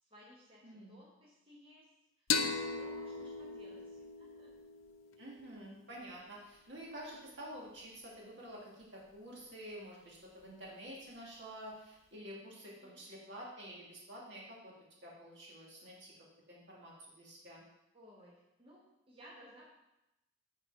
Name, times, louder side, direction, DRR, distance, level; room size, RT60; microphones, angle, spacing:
voice 1, 0.0-4.5 12.8-13.1 17.9-19.7, equal, 25° right, -6 dB, 1.2 m, -59 dB
voice 2, 0.6-1.0 5.2-14.7 15.0-16.1 16.5-17.6, equal, 60° right, -4 dB, 2.0 m, -49 dB
sound 1, 2.3-5.7, left 5 dB, 85° left, 0.6 m, -38 dB
7.2 x 4.4 x 4.6 m, 0.90 s
head